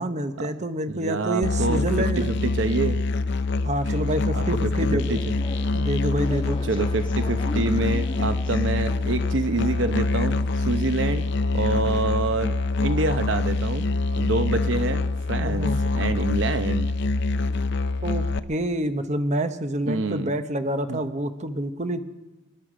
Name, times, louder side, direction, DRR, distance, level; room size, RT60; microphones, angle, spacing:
voice 1, 0.0-2.3 3.6-5.2 5.7-6.6 15.4-15.8 18.0-22.0, right 1 dB, 35° right, 9 dB, 0.9 m, -27 dB
voice 2, 0.9-3.0 3.9-4.0 4.3-4.4 4.9-5.2 6.6-11.3 11.5-12.5 12.8-13.9 14.2-15.0 15.3-16.9 19.9-20.3 20.9-21.1, right 3 dB, 70° right, 10 dB, 0.8 m, -27 dB
Musical instrument, 1.4-18.4, left 3 dB, 60° left, 0.6 m, -25 dB
sound 1, 5.1-12.3, left 1 dB, 25° left, 1.2 m, -39 dB
26.0 x 11.0 x 5.0 m, 1.2 s
head